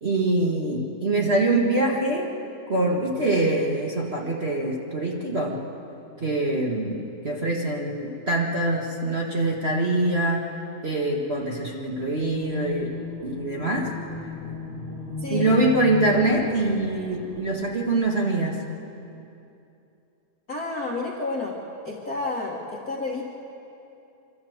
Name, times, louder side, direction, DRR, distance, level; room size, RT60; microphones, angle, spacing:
voice 1, 0.0-2.3 2.7-5.6 6.2-10.5 10.8-12.9 13.2-13.9 15.3-18.6, right 2 dB, 55° right, -2 dB, 0.6 m, -24 dB
sound 1, 11.9-17.9, left 4 dB, 15° right, 4.9 m, -36 dB
voice 2, 15.2-15.5 20.5-21.5 21.8-23.2, left 3 dB, 40° left, -3 dB, 1.4 m, -30 dB
26.5 x 13.0 x 8.0 m, 2.7 s
omnidirectional pair, 4.2 m